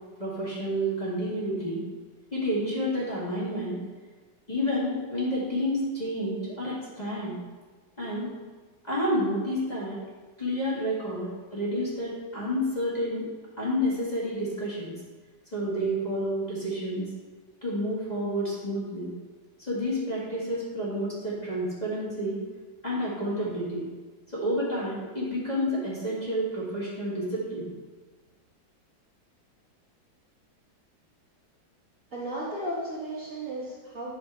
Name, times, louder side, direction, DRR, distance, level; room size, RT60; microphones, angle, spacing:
voice 1, 0.2-1.8 2.3-3.8 4.5-7.4 8.0-8.3 8.8-10.0 10.4-13.3 13.6-15.0 15.5-17.1 17.6-19.1 19.6-22.4 22.8-23.8 24.3-27.7, equal, 20° left, -8 dB, 2.1 m, -29 dB
voice 2, 32.1-34.1, right 1 dB, 45° right, -6 dB, 1.5 m, -34 dB
8.5 x 6.2 x 3.5 m, 1.3 s
omnidirectional pair, 2.1 m